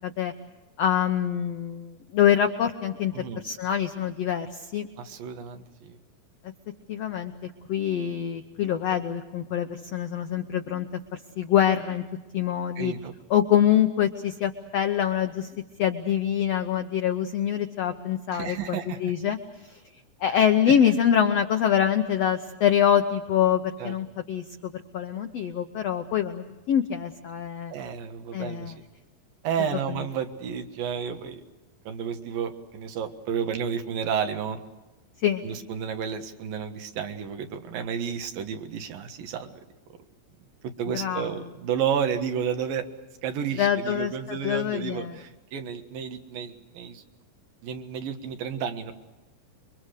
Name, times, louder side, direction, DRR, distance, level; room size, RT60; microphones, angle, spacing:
voice 1, 0.0-0.3 0.8-4.9 6.9-10.9 11.1-12.0 12.3-12.9 13.3-15.5 15.8-19.4 19.7-19.8 20.2-27.7 28.3-28.7 35.2-35.4 40.9-41.3 43.6-45.2, left 9 dB, 80° left, 7 dB, 1.4 m, -25 dB
voice 2, 5.0-6.0 12.8-13.1 18.3-19.1 20.7-20.8 23.8-23.9 27.7-28.7 29.4-31.4 31.9-34.6 35.4-39.7 40.8-42.9 43.2-47.0 47.6-48.9, right 7 dB, 70° right, 6 dB, 3.2 m, -31 dB
28.0 x 23.0 x 6.6 m, 1.1 s
omnidirectional pair, 4.3 m